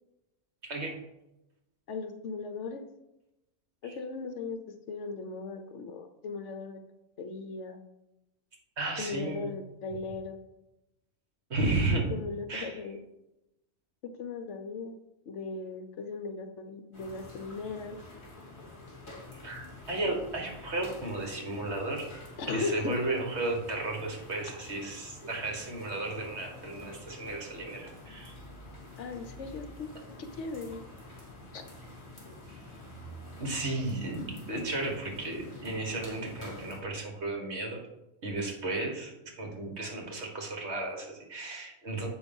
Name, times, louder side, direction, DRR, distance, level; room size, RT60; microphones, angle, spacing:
voice 1, 0.6-1.0 3.8-3.9 8.8-9.5 11.5-12.1 12.5-12.8 19.3-22.1 22.5-28.3 32.5-32.6 33.4-37.8 38.2-42.1, right 2 dB, 55° right, 1 dB, 1.9 m, -34 dB
voice 2, 1.9-2.8 3.8-6.8 7.2-7.8 9.0-10.4 12.1-13.0 14.0-14.9 15.3-18.0 22.4-23.0 29.0-29.9 30.2-30.8 31.5-31.6, left 4 dB, 65° left, 7 dB, 1.0 m, -37 dB
sound 1, 16.9-36.8, left 2 dB, 35° left, 2.8 m, -48 dB
7.8 x 5.4 x 5.3 m, 0.94 s
omnidirectional pair, 1.4 m